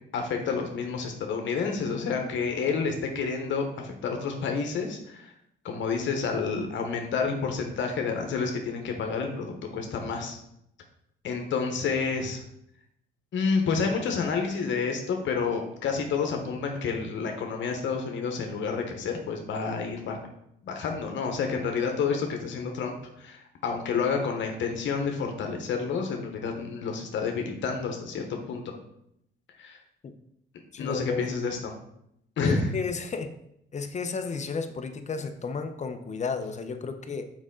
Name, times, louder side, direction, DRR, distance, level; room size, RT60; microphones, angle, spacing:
voice 1, 0.1-5.3 5.6-10.4 11.2-12.4 13.3-20.2 20.6-28.7 29.6-29.8 30.8-31.7 32.4-32.7, left 5 dB, 70° left, 3 dB, 1.1 m, -29 dB
voice 2, 30.7-31.3 32.4-33.3 33.7-37.3, left 5 dB, 35° left, 7 dB, 0.8 m, -32 dB
6.3 x 5.0 x 3.8 m, 0.76 s
cardioid pair, 90°, 20 cm